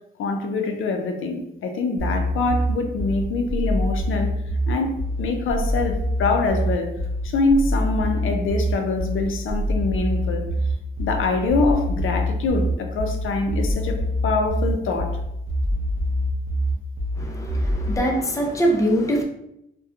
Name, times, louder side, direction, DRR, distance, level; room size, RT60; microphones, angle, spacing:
voice 1, 0.2-4.3 4.7-4.9 5.2-6.9 7.2-10.4 11.0-14.0 14.2-15.2, left 3 dB, 75° left, 4 dB, 0.4 m, -24 dB
sound 1, 2.0-18.0, equal, 35° right, 0.6 m, -25 dB
voice 2, 17.2-19.2, right 1 dB, 15° left, 0 dB, 0.5 m, -23 dB
2.7 x 2.2 x 2.4 m, 0.81 s
cardioid pair, 95°, 21 cm